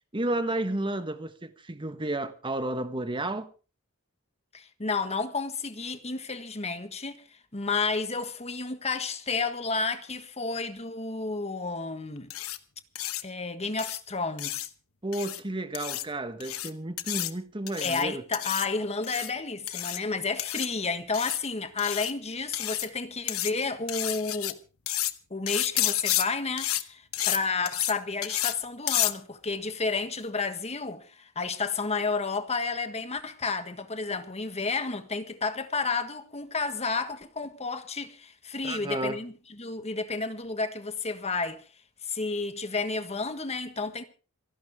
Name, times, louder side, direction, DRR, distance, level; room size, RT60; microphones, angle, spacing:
voice 1, 0.1-3.5 15.0-18.2 38.6-39.2, right 1 dB, 25° right, 1.4 m, -32 dB
voice 2, 4.5-7.2 7.5-12.3 13.2-14.7 17.8-24.6 25.3-41.7 42.0-44.0, left 4 dB, 30° left, 1.5 m, -31 dB
sound 1, 12.3-12.6 12.9-13.2 13.8-14.0 14.4-14.7 15.1-15.4 15.7-16.0 16.4-16.7 17.0-17.3 17.7-18.0 18.3-18.7 19.0-19.3 19.7-20.0 20.4-20.7 21.1-21.4 21.8-22.1 22.5-22.9 23.3-23.5 23.9-24.5 24.9-25.1 25.5-26.2 26.6-26.8 27.1-27.4 27.6-27.9 28.2-28.5 28.9-29.1, left 14 dB, 85° left, 1.1 m, -30 dB
27.0 x 11.5 x 3.6 m
head